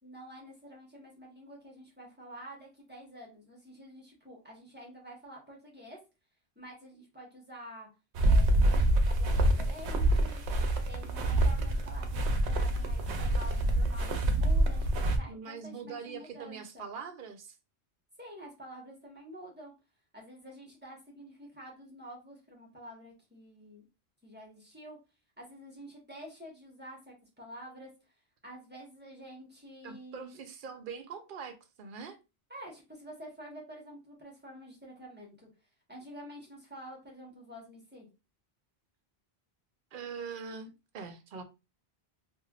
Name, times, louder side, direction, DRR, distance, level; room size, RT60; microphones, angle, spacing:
voice 1, 0.0-6.0 6.6-7.9 8.2-10.4 10.9-16.9 18.2-19.7 20.1-23.9 24.2-25.0 25.4-27.9 28.4-30.4 32.5-35.5 35.9-38.1, equal, 10° right, 1.0 m, -48 dB
sound 1, 8.1-15.2, right 1 dB, 90° right, 0.9 m, -26 dB
voice 2, 15.3-17.6 29.8-32.2 39.9-41.4, right 5 dB, 60° right, 0.7 m, -43 dB
3.2 x 2.6 x 2.3 m
omnidirectional pair, 1.1 m